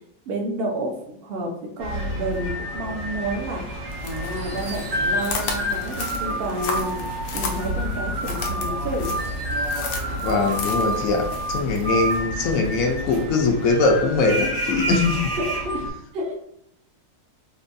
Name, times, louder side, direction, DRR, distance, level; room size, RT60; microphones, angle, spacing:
voice 1, 0.3-7.0 7.3-9.1 15.4-15.8 16.1-16.4, right 1 dB, 55° right, 0 dB, 0.6 m, -30 dB
sound 1, 1.8-15.9, right 1 dB, 85° right, 1.9 m, -28 dB
sound 2, 3.9-12.2, left 4 dB, 80° left, 1.3 m, -35 dB
voice 2, 10.2-15.3, left 3 dB, 65° left, 2 dB, 0.9 m, -22 dB
4.3 x 2.3 x 2.6 m, 0.72 s
omnidirectional pair, 1.9 m